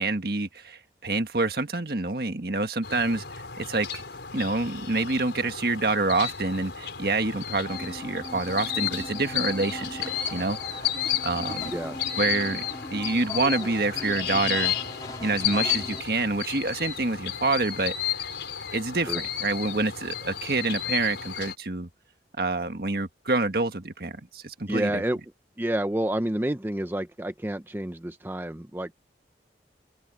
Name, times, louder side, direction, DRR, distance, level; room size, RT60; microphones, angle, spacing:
voice 1, 0.0-3.2 3.6-4.0 4.3-10.0 10.3-10.8 11.2-11.7 12.2-12.6 12.9-14.8 15.2-18.1 18.7-21.9 22.4-25.0, right 3 dB, 60° right, 1.7 m, -27 dB
sound 1, 2.8-21.6, left 10 dB, 85° left, 4.6 m, -33 dB
coconut sounds, 3.1-4.4 5.1-5.3 6.6-7.1 7.9-8.1 8.9-9.2 10.0-10.3, right 4 dB, 80° right, 6.0 m, -51 dB
sound 2, 7.6-16.0, left 1 dB, 20° left, 2.5 m, -39 dB
voice 2, 24.7-25.2 25.6-28.9, right 1 dB, 10° right, 0.5 m, -29 dB
head